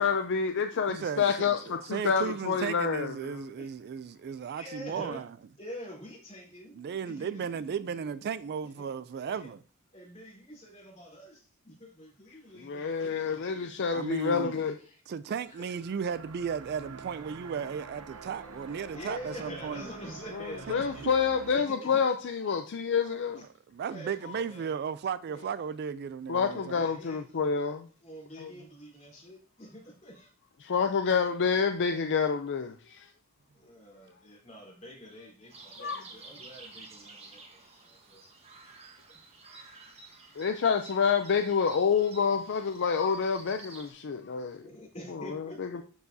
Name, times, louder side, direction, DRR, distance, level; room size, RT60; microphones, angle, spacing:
voice 1, 0.0-3.5 12.7-14.8 20.4-23.4 26.3-27.9 28.4-28.5 30.6-33.1 35.8-36.0 40.4-44.6 45.3-45.8, left 6 dB, 55° left, 0.5 m, -28 dB
voice 2, 0.9-1.5 1.8-5.3 6.7-9.6 13.9-14.6 15.1-19.8 23.1-26.9, right 6 dB, 45° right, 0.3 m, -35 dB
voice 3, 4.4-5.2 5.6-7.5 8.6-8.8 9.2-9.5 9.9-14.1 14.4-15.0 15.5-15.8 17.8-18.2 18.9-21.1 21.5-22.0 23.4-23.5 23.9-24.8 25.3-25.5 26.4-27.4 28.0-30.3 33.5-38.2 39.1-39.2 44.6-45.8, equal, 30° left, 3.5 m, -46 dB
sound 1, 15.4-21.5, right 5 dB, 85° right, 0.8 m, -47 dB
sound 2, 35.5-43.9, right 3 dB, 30° right, 1.2 m, -51 dB
12.5 x 4.7 x 2.7 m
head